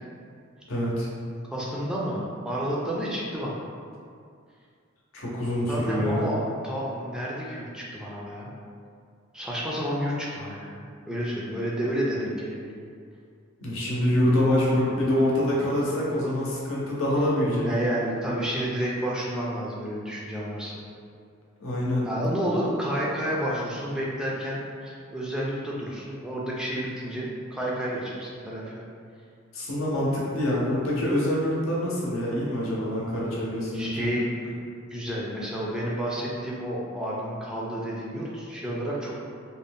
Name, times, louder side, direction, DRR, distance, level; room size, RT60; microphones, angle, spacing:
voice 1, 0.7-1.1 5.1-6.3 13.6-17.7 21.6-22.2 29.5-34.1, left 1 dB, 85° left, -5 dB, 0.7 m, -25 dB
voice 2, 1.5-3.6 5.7-8.5 9.3-12.8 17.6-20.8 22.1-28.9 33.7-34.6 34.9-39.1, equal, 5° right, -6 dB, 0.3 m, -30 dB
2.5 x 2.1 x 3.4 m, 2.3 s
head